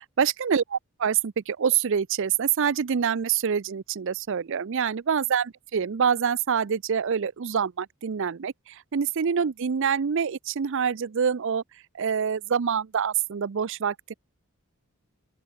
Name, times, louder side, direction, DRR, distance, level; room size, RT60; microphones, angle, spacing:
voice 1, 0.0-11.6 11.9-14.1, right 7 dB, 60° right, 0.5 m, -26 dB
open air
head